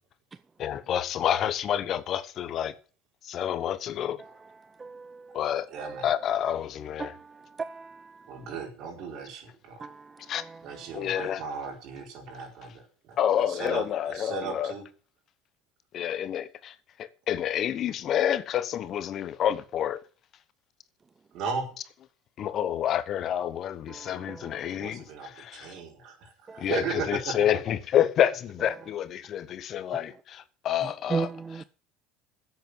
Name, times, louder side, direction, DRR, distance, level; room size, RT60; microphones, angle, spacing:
voice 1, 0.6-2.7 3.2-4.2 5.3-5.7 6.0-7.2 10.3-10.4 10.9-11.4 13.2-14.7 15.9-20.0 22.4-25.8 26.6-31.6, left 10 dB, 50° left, 1.1 m, -28 dB
voice 2, 4.8-5.2 7.6-8.0 9.8-9.9 26.5-26.6 31.1-31.6, right 4 dB, 25° right, 0.6 m, -32 dB
voice 3, 5.7-6.1 8.3-9.9 10.6-13.2 13.5-14.8 21.3-21.7 24.7-27.4, right 5 dB, 60° right, 4.5 m, -36 dB
10.5 x 8.2 x 8.0 m
hypercardioid pair, 85°, 0 cm